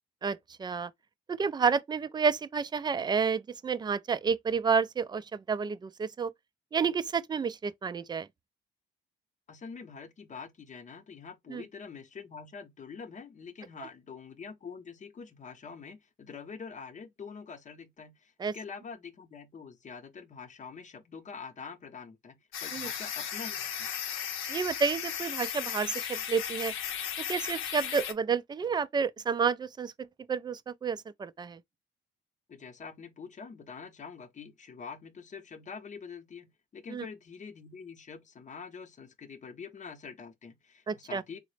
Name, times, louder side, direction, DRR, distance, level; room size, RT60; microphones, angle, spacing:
voice 1, 0.2-0.9 1.3-6.3 6.7-8.3 11.5-11.6 18.4-18.5 22.7-22.9 24.5-26.7 27.3-29.9 30.3-31.6 36.9-37.1 40.9-41.2, right 5 dB, 20° right, 0.3 m, -30 dB
voice 2, 9.5-23.9 32.5-41.4, left 5 dB, 40° left, 0.8 m, -45 dB
sound 1, 22.5-28.1, left 9 dB, 90° left, 0.6 m, -36 dB
3.8 x 2.0 x 3.2 m
cardioid pair, 90°, 20 cm